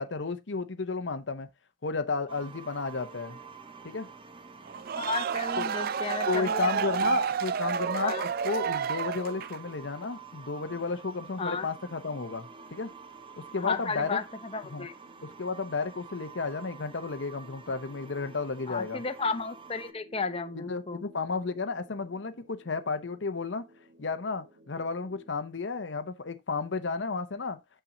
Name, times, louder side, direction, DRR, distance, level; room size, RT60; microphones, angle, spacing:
voice 1, 0.0-1.5 1.8-3.4 3.8-4.1 5.6-5.7 6.3-12.9 13.4-14.2 14.7-14.9 15.2-19.0 20.5-23.7 24.0-27.6, left 4 dB, 70° left, 0.8 m, -33 dB
sound 1, 2.3-19.9, right 5 dB, 25° right, 0.7 m, -49 dB
sound 2, 4.7-9.7, right 7 dB, 50° right, 0.4 m, -30 dB
voice 2, 5.0-7.1 8.0-8.3 11.4-11.7 13.6-14.2 14.5-14.9 18.7-21.0, left 4 dB, 30° left, 0.8 m, -33 dB
sound 3, 12.2-25.3, equal, 85° right, 1.5 m, -57 dB
6.9 x 5.8 x 3.8 m
head